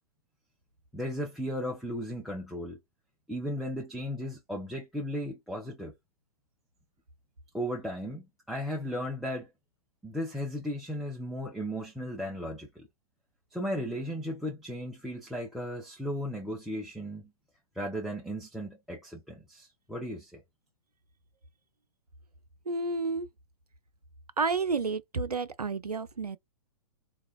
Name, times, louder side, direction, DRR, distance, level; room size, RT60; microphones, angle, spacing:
voice 1, 0.9-2.8 3.3-5.9 7.5-9.5 10.0-12.9 13.5-17.3 17.7-20.4, equal, ahead, 0.5 m, -35 dB
voice 2, 22.7-23.3 24.4-26.4, right 4 dB, 90° right, 0.4 m, -30 dB
3.8 x 2.2 x 2.3 m
figure-of-eight pair, 110°, 19 cm